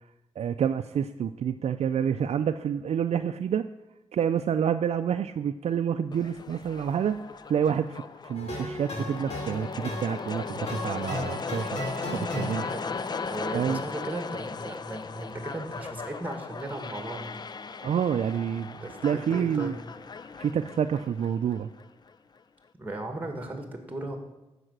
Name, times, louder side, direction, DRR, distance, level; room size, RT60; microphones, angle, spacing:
voice 1, 0.4-3.7 4.1-7.2 7.5-11.8 12.1-12.7 13.5-13.8 17.8-18.8 19.0-19.7 20.4-21.7, right 8 dB, 70° right, 8 dB, 0.4 m, -28 dB
sound 1, 6.1-22.1, left 4 dB, 40° left, 0.5 m, -37 dB
sound 2, 8.3-13.0, left 1 dB, 80° left, 3.5 m, -36 dB
voice 2, 13.3-17.4 18.8-19.8 22.8-24.2, right 1 dB, 15° right, 4 dB, 1.9 m, -36 dB
12.5 x 4.9 x 7.9 m, 1.0 s
cardioid pair, 90°, 11 cm